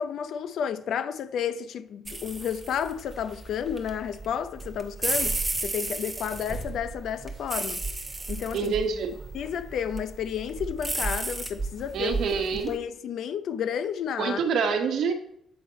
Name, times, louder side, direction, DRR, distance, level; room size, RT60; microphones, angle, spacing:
voice 1, 0.0-7.8 8.3-8.7 9.3-12.2 12.7-14.4, left 8 dB, 70° left, 0.5 m, -31 dB
sound 1, 2.0-12.7, right 2 dB, 15° right, 1.1 m, -34 dB
voice 2, 8.5-9.1 11.9-12.7 14.2-15.1, right 5 dB, 70° right, 1.0 m, -26 dB
7.8 x 3.6 x 5.2 m
cardioid pair, 90°, 0 cm